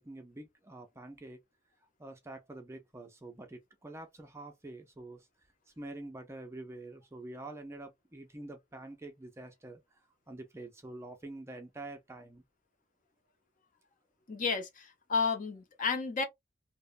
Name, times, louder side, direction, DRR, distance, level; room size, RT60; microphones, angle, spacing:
voice 1, 0.0-1.4 2.0-5.3 5.8-9.8 10.3-12.4, right 2 dB, 15° right, 0.4 m, -46 dB
voice 2, 14.3-16.3, left 5 dB, 45° left, 0.6 m, -32 dB
2.9 x 2.0 x 2.2 m
head